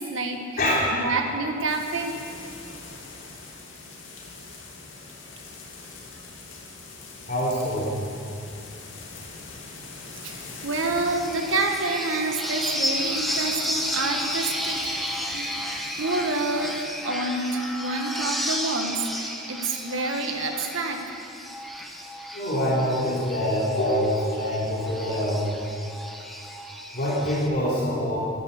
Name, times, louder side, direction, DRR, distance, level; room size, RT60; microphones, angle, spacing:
voice 1, 0.0-0.6 0.9-2.1 10.2-14.9 15.3-16.8 17.0-21.0, right 2 dB, 80° right, 4 dB, 1.6 m, -28 dB
voice 2, 0.6-0.9 7.3-7.9 22.3-25.4 26.9-28.2, equal, 50° left, -7 dB, 3.2 m, -25 dB
sound 1, 1.7-16.9, left 3 dB, 75° left, 2.3 m, -43 dB
sound 2, 11.0-27.5, equal, ahead, 1.0 m, -32 dB
13.0 x 12.0 x 6.6 m, 2.5 s
head